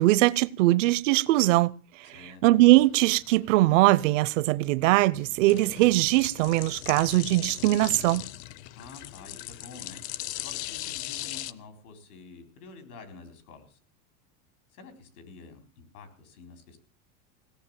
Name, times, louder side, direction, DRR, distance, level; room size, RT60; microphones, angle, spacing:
voice 1, 0.0-1.7 2.4-8.3, right 18 dB, 60° right, 0.6 m, -21 dB
voice 2, 2.0-2.4 8.7-10.0 10.4-13.8 14.7-16.8, left 4 dB, 85° left, 4.4 m, -48 dB
sound 1, 2.6-11.5, left 15 dB, 50° left, 0.7 m, -39 dB
17.0 x 7.2 x 8.9 m
supercardioid pair, 160°, 43 cm